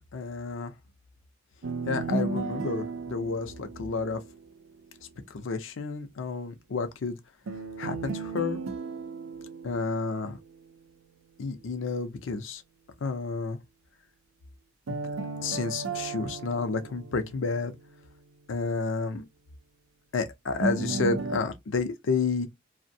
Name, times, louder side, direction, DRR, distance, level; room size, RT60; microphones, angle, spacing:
voice 1, 0.1-0.7 1.9-4.2 5.3-7.2 7.8-8.6 9.6-10.4 11.4-12.6 13.0-13.6 14.9-15.0 15.4-17.7 18.5-19.2 20.1-22.5, left 4 dB, 70° left, 0.5 m, -30 dB
sound 1, 1.6-4.7 7.5-10.7 14.9-17.9 20.6-21.4, right 3 dB, 90° right, 0.5 m, -34 dB
2.5 x 2.1 x 2.6 m
head